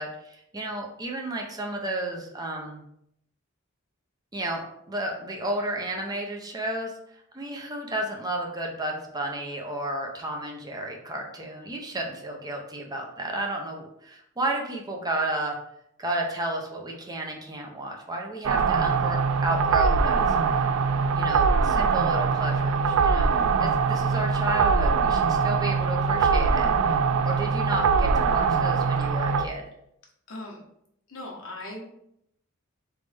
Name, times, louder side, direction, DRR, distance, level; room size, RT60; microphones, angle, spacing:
voice 1, 0.0-2.8 4.3-15.6 16.0-20.6 21.1-27.0 27.2-29.6, right 1 dB, 20° right, 1 dB, 0.7 m, -32 dB
Distant Signal Drone, 18.4-29.4, right 5 dB, 85° right, 0.4 m, -22 dB
voice 2, 30.3-30.6 31.1-31.8, left 1 dB, 75° left, -2 dB, 1.3 m, -38 dB
4.0 x 3.5 x 3.4 m, 0.75 s
head